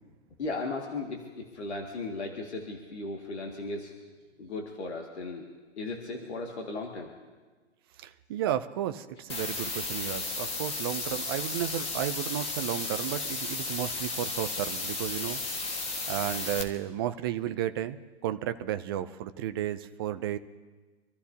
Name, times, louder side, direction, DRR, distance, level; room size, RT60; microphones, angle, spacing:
voice 1, 0.4-3.9 4.4-5.5 5.8-7.1, left 3 dB, 65° left, 1 dB, 2.2 m, -36 dB
voice 2, 8.0-15.4 15.7-15.8 16.1-20.4, right 11 dB, 20° right, 10 dB, 0.4 m, -33 dB
sound 1, 9.3-16.6, left 3 dB, 15° left, 1.6 m, -34 dB
26.5 x 14.0 x 2.8 m, 1.3 s
hypercardioid pair, 130°, 36 cm